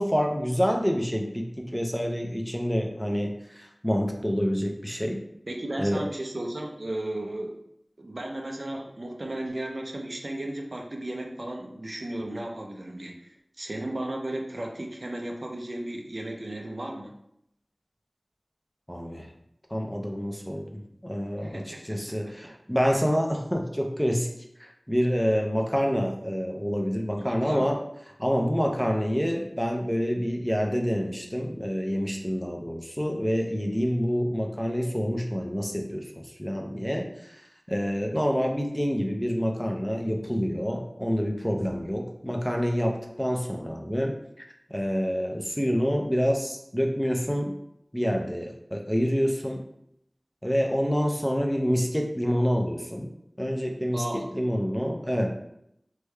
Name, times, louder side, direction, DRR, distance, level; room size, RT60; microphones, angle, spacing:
voice 1, 0.0-5.2 5.8-6.0 18.9-19.3 19.7-24.3 24.6-27.8 28.2-37.4 37.7-44.4 44.7-47.5 47.9-49.6 50.4-53.1 53.4-55.6, equal, 5° left, 1 dB, 0.5 m, -27 dB
voice 2, 5.5-7.6 8.0-17.1 21.4-22.0 27.2-27.7 53.9-54.3, right 1 dB, 70° right, 1 dB, 0.5 m, -35 dB
3.3 x 2.2 x 3.2 m, 0.76 s
wide cardioid pair, 40°, 0 cm